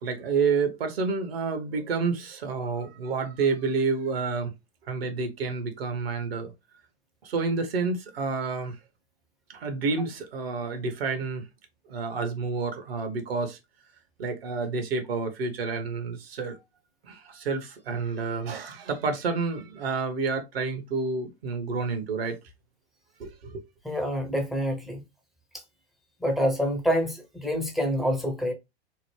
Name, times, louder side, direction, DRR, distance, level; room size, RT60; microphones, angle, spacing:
voice 1, 0.0-4.5 4.9-6.5 7.2-8.8 9.5-11.5 11.9-13.6 14.2-16.6 17.0-22.4 23.2-23.6, right 4 dB, 60° right, 0.9 m, -29 dB
voice 2, 23.8-25.0 26.2-28.5, equal, ahead, 0.5 m, -27 dB
2.9 x 2.0 x 3.0 m
figure-of-eight pair, 95°, 33 cm